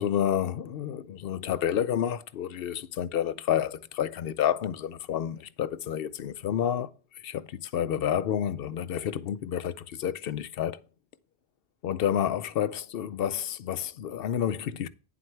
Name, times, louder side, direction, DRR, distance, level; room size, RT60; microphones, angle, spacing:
voice 1, 0.0-6.9 7.2-10.8 11.8-14.9, left 9 dB, 65° left, 0.7 m, -29 dB
9.8 x 7.6 x 3.2 m
omnidirectional pair, 1.1 m